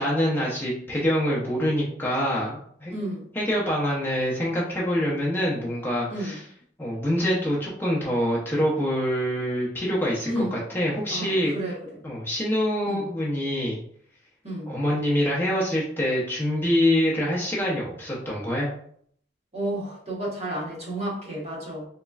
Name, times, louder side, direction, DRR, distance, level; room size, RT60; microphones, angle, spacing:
voice 1, 0.0-2.9 3.3-6.4 6.8-11.5 12.0-13.8 14.7-18.7, equal, 10° left, -6 dB, 0.6 m, -25 dB
voice 2, 2.9-3.2 6.1-6.3 10.2-10.6 11.1-11.7 12.9-13.0 14.4-14.7 19.5-21.8, right 1 dB, 35° right, -5 dB, 1.2 m, -31 dB
3.6 x 3.1 x 2.3 m, 0.64 s
head